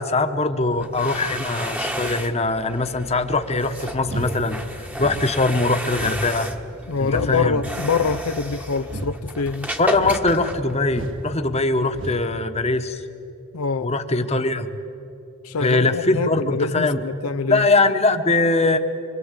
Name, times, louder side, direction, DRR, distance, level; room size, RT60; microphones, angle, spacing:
voice 1, 0.0-4.6 5.0-6.5 7.0-7.6 9.8-13.0 13.8-14.7 15.6-17.0 17.5-18.8, left 2 dB, 30° left, 1.2 m, -21 dB
sound 1, 0.7-11.3, right 1 dB, 5° right, 1.2 m, -33 dB
sound 2, 4.0-4.4 5.0-5.3 5.9-6.3 7.0-7.3 8.0-8.3 8.9-9.1 9.9-10.3 10.9-11.2 11.9-12.2, right 1 dB, 60° right, 1.8 m, -32 dB
voice 2, 6.9-9.7 13.5-13.9 15.4-17.7, left 5 dB, 80° left, 0.5 m, -25 dB
25.5 x 24.5 x 8.3 m
head